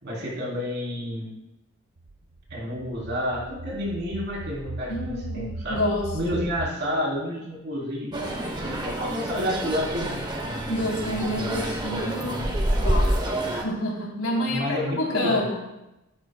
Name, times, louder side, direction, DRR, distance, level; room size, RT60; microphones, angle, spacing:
voice 1, 0.0-1.3 2.5-10.3 11.2-11.3 14.4-15.4, equal, 50° right, -3 dB, 3.5 m, -30 dB
sound 1, 2.0-6.7, right 2 dB, 75° right, 0.6 m, -37 dB
voice 2, 4.9-6.4 10.7-12.5 12.8-15.8, left 1 dB, 80° left, -2 dB, 3.5 m, -28 dB
sound 2, 8.1-13.6, right 1 dB, 20° right, 1.0 m, -27 dB
14.5 x 11.5 x 2.3 m, 0.91 s
head